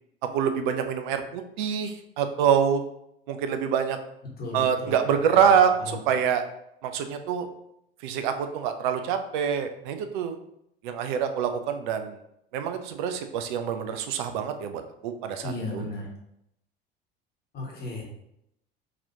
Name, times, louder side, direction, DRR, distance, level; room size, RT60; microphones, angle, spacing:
voice 1, 0.3-2.8 3.3-4.0 4.5-6.4 6.8-7.5 8.0-10.4 10.8-12.2 12.5-15.8, right 7 dB, 55° right, 7 dB, 0.5 m, -25 dB
voice 2, 4.4-5.5 5.8-5.9 15.4-16.1 17.5-18.0, left 2 dB, 30° left, -2 dB, 1.2 m, -35 dB
3.9 x 2.9 x 2.8 m, 0.78 s
figure-of-eight pair, 65°, 29 cm